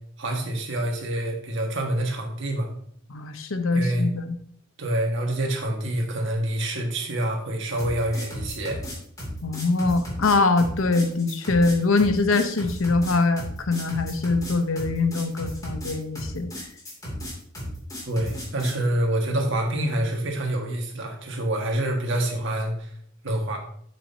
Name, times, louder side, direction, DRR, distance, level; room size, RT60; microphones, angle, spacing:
voice 1, 0.2-2.7 3.7-4.1 4.8-8.8 18.1-22.9 23.2-23.6, right 1 dB, 65° right, 2 dB, 1.7 m, -26 dB
voice 2, 3.1-4.4 9.4-16.5, left 3 dB, 80° left, 8 dB, 0.9 m, -23 dB
sound 1, 7.8-18.8, equal, 20° left, 2.8 m, -35 dB
9.0 x 7.6 x 2.8 m, 0.64 s
head